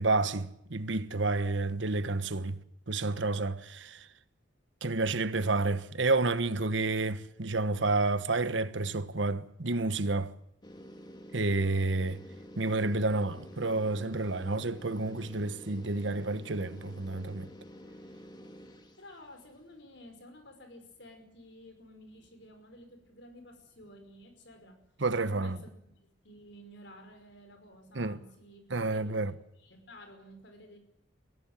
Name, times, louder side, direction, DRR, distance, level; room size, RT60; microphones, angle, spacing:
voice 1, 0.0-2.6 2.9-4.1 4.8-10.3 11.3-12.2 12.6-17.5 25.0-25.6 27.9-28.2 28.7-29.3, right 3 dB, 75° right, 1.2 m, -30 dB
sound 1, 10.6-19.4, equal, 25° left, 2.0 m, -49 dB
voice 2, 19.0-24.8 25.2-25.7 26.2-28.6 28.9-30.8, equal, 65° left, 5.4 m, -52 dB
22.0 x 16.0 x 8.9 m
head